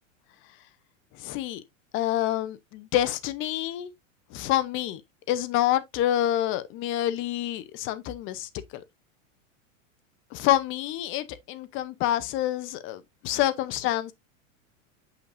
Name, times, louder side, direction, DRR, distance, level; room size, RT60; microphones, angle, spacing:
voice 1, 1.2-1.6 1.9-3.9 4.3-5.0 5.3-8.8 10.3-14.1, left 13 dB, 30° left, 0.6 m, -27 dB
6.3 x 5.8 x 2.5 m
supercardioid pair, 140°, 40 cm